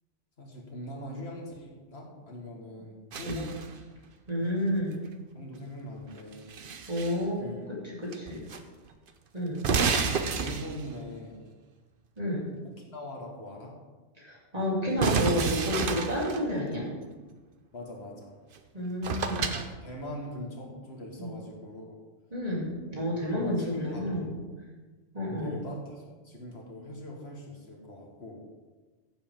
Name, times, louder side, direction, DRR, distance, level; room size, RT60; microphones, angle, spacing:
voice 1, 0.4-3.6 5.3-6.5 7.3-7.7 10.2-11.5 12.6-13.8 17.7-18.4 19.2-22.0 23.3-24.5 25.4-28.3, left 1 dB, 60° left, -2 dB, 2.0 m, -42 dB
sound 1, 3.1-3.8 6.1-7.2 8.1-8.6 8.9-9.0 9.6-11.0 15.0-16.4 18.6-18.7 19.0-19.7, right 5 dB, 50° right, 0.9 m, -30 dB
voice 2, 4.3-5.0 6.9-7.4 7.7-8.4 9.3-9.6 12.2-12.5 14.2-16.9 18.7-19.5 21.2-21.3 22.3-24.3 25.1-25.6, left 1 dB, 30° right, -5 dB, 3.3 m, -30 dB
15.5 x 7.8 x 3.7 m, 1.3 s
omnidirectional pair, 1.2 m